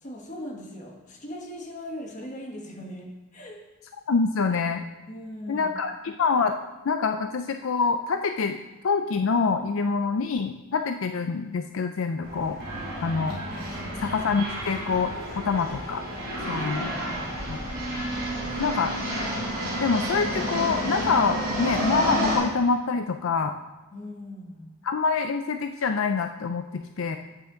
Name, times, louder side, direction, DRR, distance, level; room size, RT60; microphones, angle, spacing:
voice 1, 0.0-3.6 5.1-5.7 16.4-17.2 23.9-24.7, left 1 dB, 35° left, 1 dB, 1.4 m, -40 dB
voice 2, 4.1-4.8 5.5-6.5 6.9-8.6 8.8-12.6 13.0-13.4 14.0-16.0 16.5-16.9 17.5-17.6 18.6-18.9 19.8-23.5 24.8-27.2, left 4 dB, 70° left, 7 dB, 0.4 m, -26 dB
sound 1, 12.2-22.4, equal, 50° right, 3.7 m, -30 dB
10.0 x 8.3 x 3.8 m, 1.1 s
head